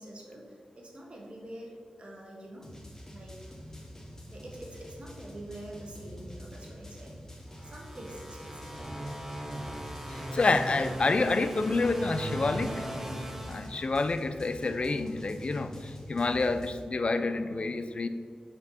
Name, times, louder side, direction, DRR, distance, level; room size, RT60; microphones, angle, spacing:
voice 1, 0.0-2.7 3.1-3.4 4.3-7.1 7.6-8.9, right 1 dB, 45° right, -1 dB, 1.5 m, -46 dB
sound 1, 2.6-16.8, equal, 20° left, 1.2 m, -46 dB
sound 2, 7.5-14.4, right 1 dB, 15° right, 0.8 m, -39 dB
voice 2, 10.1-12.9 13.5-18.1, left 3 dB, 50° left, 10 dB, 0.4 m, -28 dB
4.4 x 4.3 x 5.6 m, 2.1 s
cardioid pair, 60°, 2 cm